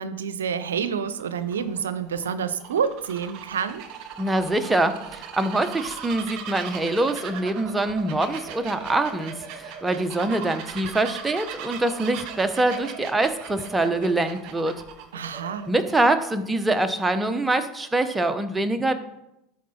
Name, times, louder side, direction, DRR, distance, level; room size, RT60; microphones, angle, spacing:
voice 1, 0.0-3.8 15.1-15.7, right 7 dB, 85° right, 13 dB, 0.6 m, -28 dB
Bird vocalization bird call bird song, 0.9-15.9, right 7 dB, 55° right, 1.2 m, -39 dB
voice 2, 4.2-14.8 15.7-19.0, right 2 dB, 15° right, 8 dB, 1.0 m, -24 dB
12.5 x 4.8 x 4.4 m, 0.85 s
hypercardioid pair, 85°, 0 cm